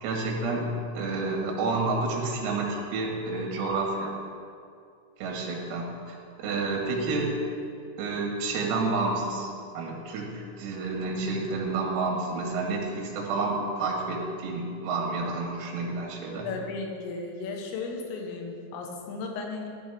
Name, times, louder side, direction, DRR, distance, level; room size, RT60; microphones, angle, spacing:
voice 1, 0.0-4.1 5.2-7.4 8.0-16.5, right 3 dB, 90° right, -1 dB, 4.5 m, -30 dB
voice 2, 16.4-19.7, left 4 dB, 80° left, 1 dB, 3.8 m, -35 dB
14.0 x 11.5 x 3.5 m, 2.3 s
omnidirectional pair, 5.9 m